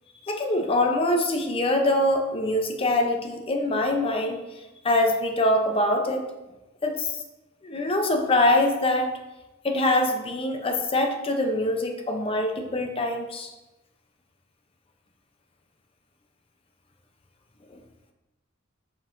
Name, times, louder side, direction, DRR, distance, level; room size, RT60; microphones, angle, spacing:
voice 1, 0.2-4.4 4.8-6.3 6.8-7.2 7.6-9.2 9.6-13.5 17.7-17.8, left 1 dB, 25° left, 4 dB, 0.6 m, -24 dB
7.3 x 5.2 x 2.6 m, 1.0 s
head